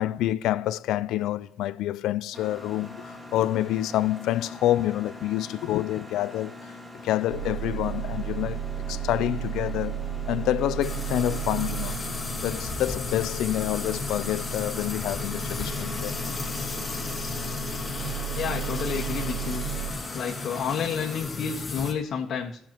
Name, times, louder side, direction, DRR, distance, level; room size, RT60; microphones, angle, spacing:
voice 1, 0.0-6.7 7.0-8.6 8.9-12.0 12.4-16.2, left 13 dB, 90° left, 0.4 m, -27 dB
Mechanisms, 2.3-21.2, left 2 dB, 10° right, 3.1 m, -43 dB
sound 1, 7.3-19.9, right 6 dB, 75° right, 1.0 m, -34 dB
sound 2, 10.8-21.9, left 3 dB, 25° left, 2.1 m, -34 dB
voice 2, 18.3-19.6 20.1-22.6, left 7 dB, 65° left, 1.5 m, -30 dB
19.0 x 6.9 x 3.0 m
cardioid pair, 90°, 0 cm